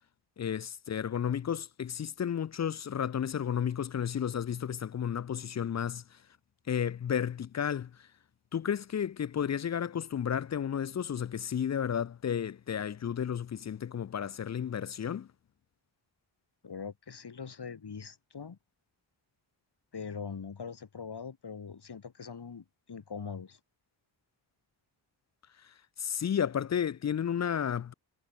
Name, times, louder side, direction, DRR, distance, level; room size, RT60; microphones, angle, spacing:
voice 1, 0.4-6.2 6.7-8.1 8.5-15.3 26.0-27.9, left 8 dB, 40° left, 0.4 m, -32 dB
voice 2, 16.6-18.6 19.9-23.6, left 6 dB, 55° left, 2.6 m, -42 dB
cardioid pair, 65°, 47 cm